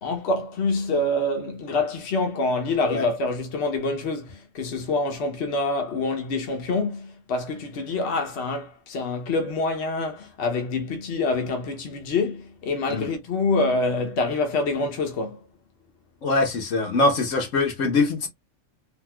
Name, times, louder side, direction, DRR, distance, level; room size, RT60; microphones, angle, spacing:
voice 1, 0.0-15.4, left 3 dB, 65° left, 1.0 m, -26 dB
voice 2, 16.2-18.3, left 3 dB, 85° left, 1.4 m, -23 dB
3.5 x 2.6 x 2.2 m
omnidirectional pair, 1.3 m